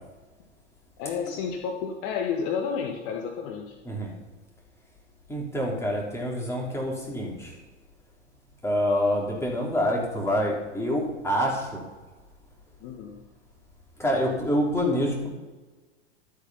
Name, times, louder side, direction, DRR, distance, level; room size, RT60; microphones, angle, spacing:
voice 1, 1.0-3.8 12.8-13.2, left 6 dB, 40° left, 1 dB, 1.7 m, -31 dB
voice 2, 5.3-7.5 8.6-11.8 14.0-15.3, equal, 10° left, -2 dB, 3.6 m, -26 dB
12.5 x 8.3 x 5.7 m, 1.3 s
figure-of-eight pair, 95°, 36 cm